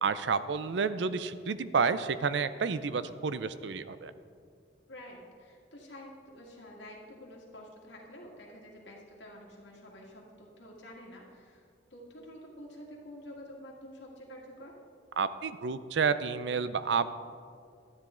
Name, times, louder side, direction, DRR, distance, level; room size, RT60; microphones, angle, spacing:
voice 1, 0.0-4.1 15.2-17.1, right 5 dB, 80° right, 13 dB, 0.5 m, -30 dB
voice 2, 4.9-11.6 11.9-14.8, equal, 90° left, -2 dB, 2.0 m, -49 dB
12.5 x 9.8 x 3.8 m, 2.3 s
head